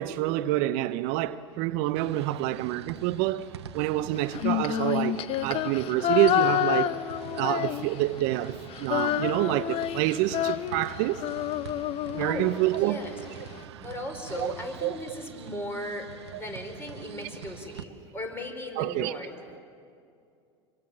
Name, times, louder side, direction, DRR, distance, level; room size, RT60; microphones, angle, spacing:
voice 1, 0.0-3.5 3.7-7.0 7.3-11.2 12.1-13.0 14.3-14.5 14.8-15.0 16.3-16.4 18.8-19.2, right 15 dB, 55° right, 0.8 m, -27 dB
sound 1, 2.0-17.8, right 8 dB, 75° right, 1.2 m, -45 dB
Female singing, 4.3-8.2 8.5-12.8, left 13 dB, 45° left, 0.8 m, -28 dB
voice 2, 12.7-13.1 13.8-16.1 16.3-19.3, left 1 dB, 15° left, 5.2 m, -37 dB
26.0 x 23.5 x 7.3 m
hypercardioid pair, 90°, 14 cm